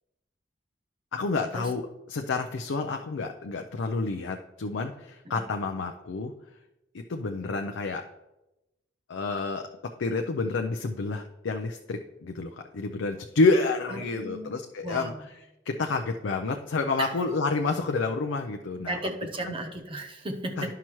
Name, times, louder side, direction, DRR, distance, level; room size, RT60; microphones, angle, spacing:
voice 1, 1.1-1.8 2.1-6.3 6.9-8.0 9.1-9.7 10.0-15.1 15.7-19.0 19.4-19.6 20.6-20.7, left 3 dB, 85° left, 4 dB, 0.5 m, -29 dB
voice 2, 13.9-15.3 17.0-17.1 18.8-20.7, right 1 dB, 30° right, 4 dB, 0.8 m, -35 dB
11.0 x 5.8 x 3.0 m, 0.97 s
head